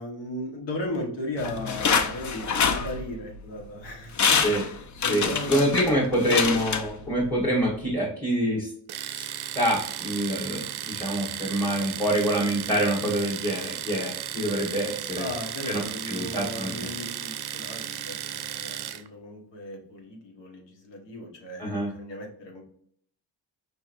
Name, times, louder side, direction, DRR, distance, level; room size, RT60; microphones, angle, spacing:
voice 1, 0.0-4.4 5.0-5.8 15.2-22.6, left 1 dB, 75° left, 1 dB, 1.4 m, -36 dB
sound 1, 1.4-3.4 3.8-3.9 4.2-7.3 7.7-7.8, left 6 dB, 40° left, 0.5 m, -26 dB
voice 2, 5.1-8.7 9.1-9.3 9.5-15.3 15.6-16.9 21.6-21.9, equal, 5° left, -5 dB, 1.2 m, -26 dB
Domestic sounds home sounds, 8.9-19.1, right 10 dB, 60° right, 0.5 m, -35 dB
5.2 x 2.9 x 2.5 m, 0.63 s
cardioid pair, 85°, 44 cm